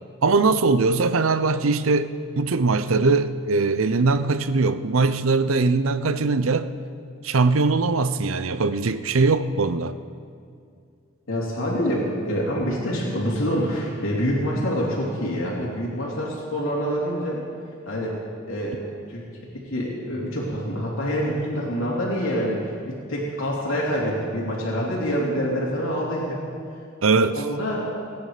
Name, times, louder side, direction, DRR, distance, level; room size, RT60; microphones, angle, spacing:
voice 1, 0.2-6.7 7.2-10.0 27.0-27.4, right 3 dB, 90° right, 12 dB, 0.7 m, -21 dB
voice 2, 11.3-17.4 17.8-18.1 18.5-18.7 19.1-19.2 19.5-26.4 27.2-27.9, equal, 75° left, -5 dB, 3.3 m, -26 dB
28.5 x 9.8 x 5.0 m, 2.3 s
head